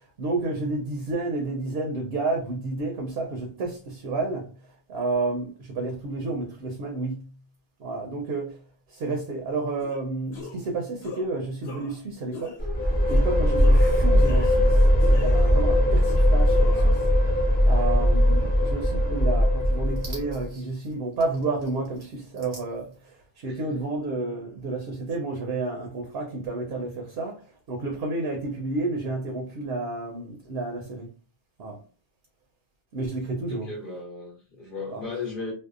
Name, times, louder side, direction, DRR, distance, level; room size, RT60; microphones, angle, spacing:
voice 1, 0.2-4.5 4.9-7.3 7.8-8.6 8.9-12.5 13.1-14.8 15.1-17.0 17.7-27.4 27.7-31.1 31.6-31.8 32.9-33.7 34.9-35.0, right 3 dB, 70° right, 0.8 m, -30 dB
sound 1, 9.8-10.0 10.3-10.7 11.0-11.3 11.6-12.0 12.3-12.6 13.1-13.2 13.5-14.7 15.0-15.6 16.1-17.0, left 4 dB, 80° left, 1.2 m, -42 dB
sound 2, 12.6-20.4, equal, 15° left, 0.4 m, -20 dB
voice 2, 23.5-23.8 33.5-35.5, left 4 dB, 55° left, 0.9 m, -36 dB
2.6 x 2.1 x 2.4 m
omnidirectional pair, 1.1 m